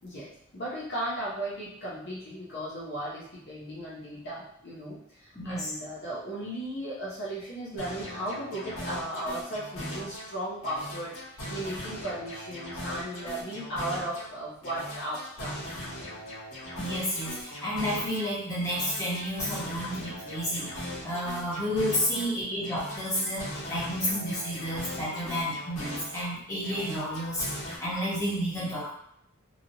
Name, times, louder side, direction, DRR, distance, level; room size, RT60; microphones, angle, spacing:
voice 1, 0.0-15.6 22.1-22.2, right 1 dB, 50° left, -7 dB, 0.8 m, -36 dB
voice 2, 5.3-5.7 16.8-28.9, equal, 15° left, -9 dB, 1.1 m, -31 dB
sound 1, 7.8-10.3 10.6-14.3 14.6-18.3 18.6-22.3 22.6-26.3 26.6-27.8, equal, 75° left, 1.3 m, -39 dB
3.0 x 2.6 x 2.8 m, 0.71 s
head